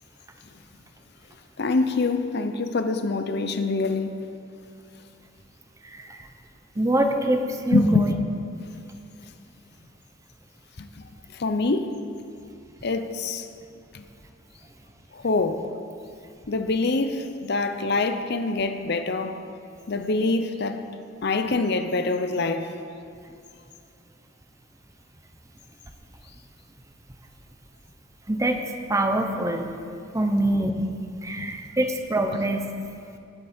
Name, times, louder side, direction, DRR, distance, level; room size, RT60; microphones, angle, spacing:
voice 1, 1.6-4.2 7.7-8.1 10.8-10.9 11.3-11.9 12.8-13.5 13.9-14.0 15.1-15.6 16.5-19.4 19.9-20.8 21.2-22.7 31.4-31.5 32.3-32.4, left 3 dB, 60° left, 0.7 m, -25 dB
voice 2, 5.8-6.3 6.8-8.1 28.3-28.6 28.9-29.7 30.1-30.9 31.2-32.6, right 1 dB, 15° right, 0.8 m, -24 dB
19.0 x 8.5 x 4.4 m
head